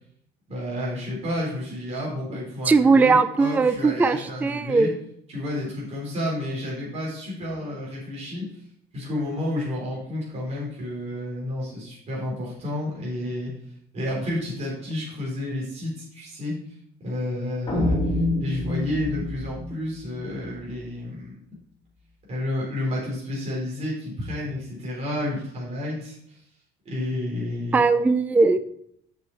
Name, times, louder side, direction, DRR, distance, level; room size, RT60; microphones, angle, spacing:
voice 1, 0.5-4.9 5.3-8.6 8.9-13.5 13.9-16.6 17.0-18.1 18.4-21.4 22.3-26.4 26.9-27.8, left 1 dB, 35° right, -4 dB, 3.6 m, -30 dB
voice 2, 2.7-5.0 27.7-28.6, right 4 dB, 10° right, 12 dB, 0.3 m, -19 dB
sound 1, 17.7-20.8, left 2 dB, 25° left, 1.6 m, -27 dB
6.9 x 6.4 x 4.5 m, 0.70 s
cardioid pair, 140°, 18 cm